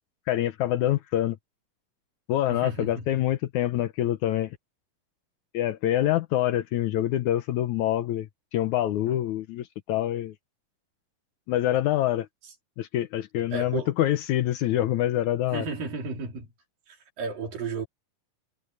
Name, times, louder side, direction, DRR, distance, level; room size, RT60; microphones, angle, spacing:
voice 1, 0.3-1.4 2.3-4.6 5.5-10.3 11.5-12.3 12.8-15.7, left 13 dB, 70° left, 1.9 m, -26 dB
voice 2, 2.5-2.9 13.5-13.9 15.5-16.5 17.2-17.9, right 4 dB, 80° right, 5.7 m, -32 dB
omnidirectional pair, 3.9 m